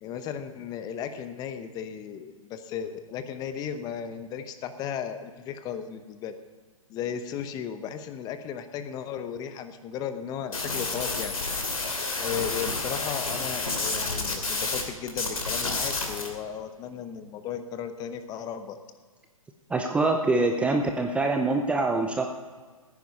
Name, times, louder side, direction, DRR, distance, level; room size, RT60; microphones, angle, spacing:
voice 1, 0.0-6.3 6.9-11.3 12.2-18.8, left 8 dB, 20° left, 10 dB, 0.9 m, -35 dB
sound 1, 10.5-14.8 15.1-16.3, left 3 dB, 75° left, 2.8 m, -30 dB
voice 2, 19.7-22.3, right 3 dB, 5° right, 4 dB, 0.6 m, -24 dB
15.5 x 9.7 x 5.4 m, 1.5 s
figure-of-eight pair, 120°, 18 cm